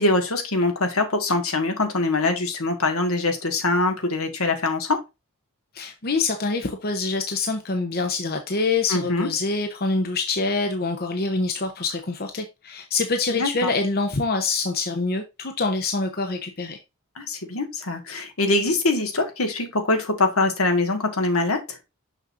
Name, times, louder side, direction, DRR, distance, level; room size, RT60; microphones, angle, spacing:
voice 1, 0.0-5.0 8.9-9.3 13.3-13.7 17.2-21.8, left 2 dB, 80° left, 1.8 m, -23 dB
voice 2, 5.7-16.8, left 3 dB, 45° left, 0.9 m, -25 dB
6.4 x 6.3 x 2.6 m
head